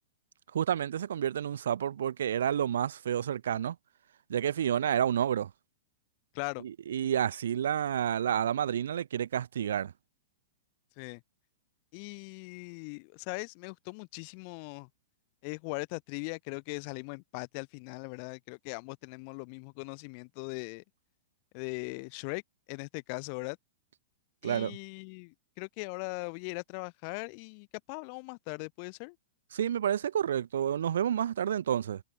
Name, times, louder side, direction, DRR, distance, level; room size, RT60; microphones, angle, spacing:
voice 1, 0.5-3.7 4.3-5.5 6.9-9.9 24.4-24.8 29.5-32.0, right 9 dB, 85° right, 1.3 m, -29 dB
voice 2, 11.9-14.9 15.4-20.8 21.5-22.4 22.7-23.6 24.4-29.2, left 39 dB, 45° left, 6.5 m, -40 dB
hypercardioid pair, 145°, 0 cm